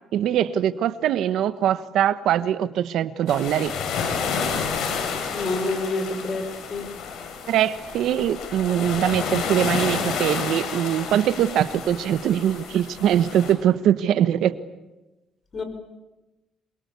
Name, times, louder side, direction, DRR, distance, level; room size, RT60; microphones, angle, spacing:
voice 1, 0.1-3.7 7.5-14.5, right 10 dB, 80° right, 13 dB, 1.3 m, -22 dB
sound 1, 3.3-13.5, left 6 dB, 75° left, 6.3 m, -30 dB
voice 2, 5.3-6.9 15.5-15.6, left 2 dB, 45° left, 7 dB, 5.7 m, -28 dB
27.0 x 23.5 x 8.4 m, 1.1 s
cardioid pair, 90°, 0 cm